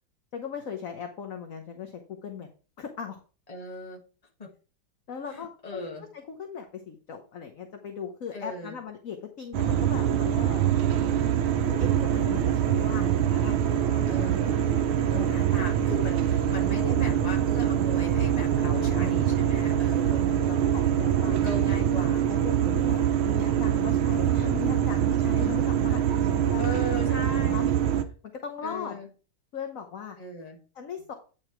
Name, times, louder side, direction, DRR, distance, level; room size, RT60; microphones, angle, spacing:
voice 1, 0.3-2.5 2.8-3.2 5.1-10.7 11.6-14.0 15.1-15.3 18.5-19.2 19.9-21.4 22.3-26.7 27.0-27.7 28.2-29.0 29.5-30.2 30.7-31.1, left 7 dB, 50° left, 4 dB, 1.1 m, -38 dB
voice 2, 3.5-4.0 4.4-4.5 5.3-6.1 8.3-8.7 14.1-20.3 21.3-22.7 24.2-24.5 25.4-25.7 26.6-27.6 28.6-29.1 30.2-30.6, left 2 dB, 20° left, 1 dB, 1.7 m, -38 dB
sound 1, 9.5-28.0, right 10 dB, 85° right, 1.7 m, -24 dB
9.3 x 4.9 x 4.4 m, 0.37 s
omnidirectional pair, 2.2 m